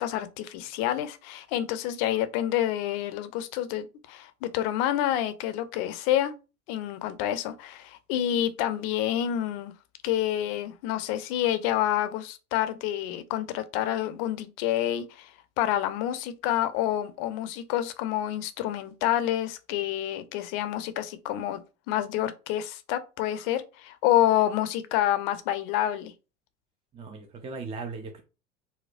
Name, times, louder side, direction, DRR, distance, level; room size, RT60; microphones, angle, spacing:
voice 1, 0.0-6.3 6.7-9.7 10.0-15.3 15.6-21.6 21.9-26.1, left 12 dB, 55° left, 0.6 m, -28 dB
voice 2, 26.9-28.2, right 4 dB, 15° right, 0.4 m, -38 dB
4.2 x 2.2 x 2.4 m
hypercardioid pair, 80°, 36 cm